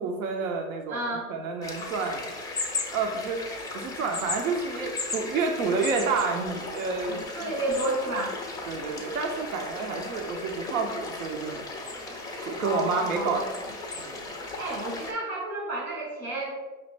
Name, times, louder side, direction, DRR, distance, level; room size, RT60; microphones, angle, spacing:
voice 1, 0.0-2.3 2.9-3.4 3.7-7.5 8.7-11.6 12.4-13.4 14.0-14.1, right 4 dB, 75° right, 3 dB, 0.7 m, -29 dB
voice 2, 0.9-1.3 7.1-8.3 12.6-13.4 14.5-16.5, right 1 dB, 90° right, -4 dB, 1.5 m, -31 dB
sound 1, 1.6-15.1, left 3 dB, 10° left, 0.3 m, -36 dB
5.3 x 2.4 x 3.2 m, 1.2 s
hypercardioid pair, 100°, 42 cm